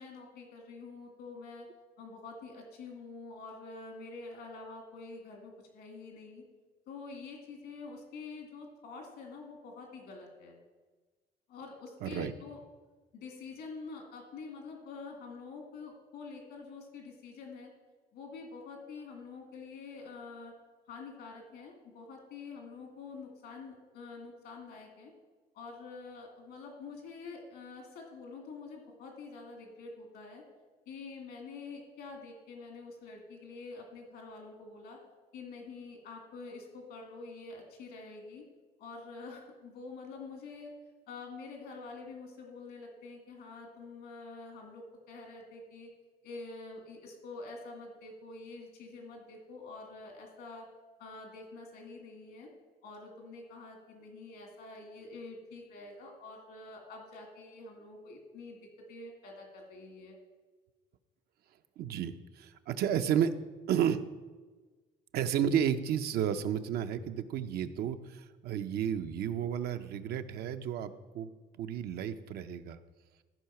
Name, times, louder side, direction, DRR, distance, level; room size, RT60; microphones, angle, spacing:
voice 1, 0.0-1.7 2.0-6.4 6.9-10.6 11.5-12.6 13.1-17.7 18.1-20.5 20.9-25.1 25.5-30.4 30.9-35.0 35.3-38.4 38.8-40.7 41.1-45.9 46.2-50.7 51.0-52.5 52.8-58.6 58.9-60.2, left 4 dB, 80° left, 2 dB, 2.3 m, -47 dB
voice 2, 12.0-12.3 61.8-63.4 63.7-64.0 65.1-71.3 71.6-72.8, right 9 dB, 70° right, 9 dB, 0.7 m, -32 dB
13.5 x 4.7 x 5.8 m, 1.3 s
cardioid pair, 110°, 17 cm